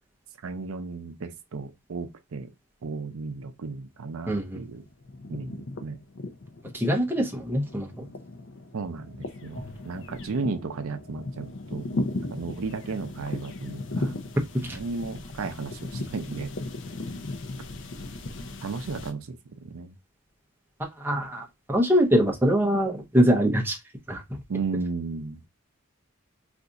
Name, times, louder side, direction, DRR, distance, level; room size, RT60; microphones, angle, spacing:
voice 1, 0.4-2.5 2.8-4.8 5.3-6.0 8.7-14.2 14.6-16.5 18.6-19.9 24.5-25.4, right 4 dB, 70° right, 0.5 m, -34 dB
sound 1, 4.0-4.6 4.9-19.1, left 2 dB, 55° left, 0.5 m, -37 dB
voice 2, 4.3-4.6 6.7-8.1 9.6-9.7 21.0-23.8 24.1-24.2, equal, 10° right, 0.6 m, -23 dB
2.5 x 2.3 x 3.9 m
head